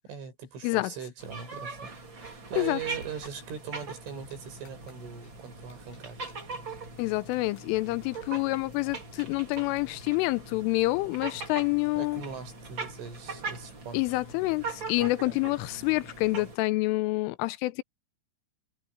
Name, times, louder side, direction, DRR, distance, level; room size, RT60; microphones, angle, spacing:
voice 1, 0.0-6.2 12.0-14.2 15.0-15.4, right 7 dB, 75° right, 9.2 m, -41 dB
sound 1, 1.2-16.6, right 3 dB, 25° right, 3.5 m, -41 dB
sound 2, 2.8-3.5 4.1-4.4 4.6-4.9 5.2-5.3 5.7-6.0 6.3-6.6 7.0-7.1 7.3-7.6 7.9-8.2 8.7-9.9, left 4 dB, 65° left, 9.4 m, -58 dB
voice 2, 7.0-12.2 13.9-17.8, left 21 dB, 85° left, 3.2 m, -27 dB
omnidirectional pair, 5.6 m